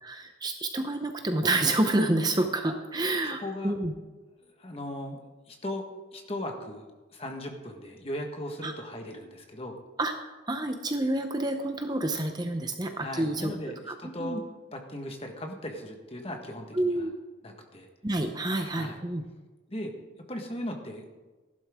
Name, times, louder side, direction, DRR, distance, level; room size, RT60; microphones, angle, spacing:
voice 1, 0.0-3.9 8.6-8.7 10.0-10.1 10.5-13.5 13.9-14.0 14.2-14.4 16.7-17.1 18.0-19.2, right 2 dB, 20° right, 5 dB, 0.7 m, -28 dB
voice 2, 3.4-3.8 4.6-5.2 5.5-5.8 6.1-6.9 7.1-9.8 13.0-14.4 14.7-17.1 17.4-17.9 18.7-19.0 19.7-19.9 20.3-21.1, left 1 dB, 30° left, 3 dB, 1.5 m, -37 dB
15.0 x 12.0 x 3.7 m, 1.2 s
head